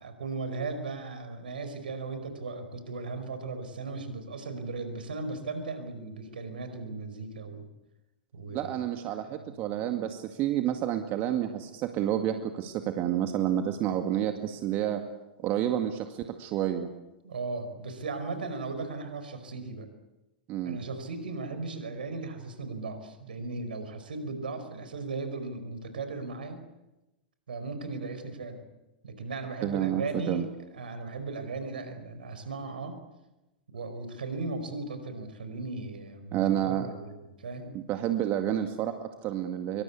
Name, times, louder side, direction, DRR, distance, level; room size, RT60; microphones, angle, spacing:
voice 1, 0.0-7.7 8.3-8.8 9.1-9.5 17.2-19.9 20.6-26.6 27.5-28.6 29.0-30.4 30.7-33.0 33.7-37.7, right 3 dB, 75° right, 9 dB, 5.1 m, -37 dB
voice 2, 8.5-15.0 15.4-16.9 20.5-20.8 29.6-30.4 36.3-36.9 37.7-39.8, right 11 dB, 40° right, 6 dB, 2.0 m, -29 dB
25.5 x 24.0 x 8.6 m, 1.0 s
figure-of-eight pair, 100°, 5 cm